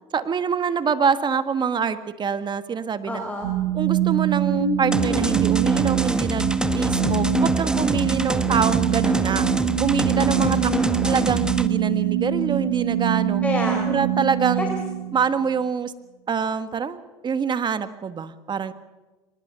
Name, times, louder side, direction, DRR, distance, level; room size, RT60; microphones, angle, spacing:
voice 1, 0.1-3.2 3.7-9.5 9.8-10.6 11.0-13.4 13.9-14.8 15.1-15.9 16.3-18.7, right 6 dB, 35° right, 11 dB, 1.7 m, -25 dB
voice 2, 3.0-3.5 6.7-7.2 10.4-10.9 13.4-13.9 14.6-14.7, left 1 dB, 10° left, 2 dB, 4.5 m, -28 dB
sound 1, 3.4-15.6, right 9 dB, 75° right, 6.7 m, -24 dB
sound 2, 4.9-11.7, right 1 dB, 5° right, 1.3 m, -26 dB
24.0 x 20.0 x 6.9 m, 1.2 s
supercardioid pair, 85°, 14 cm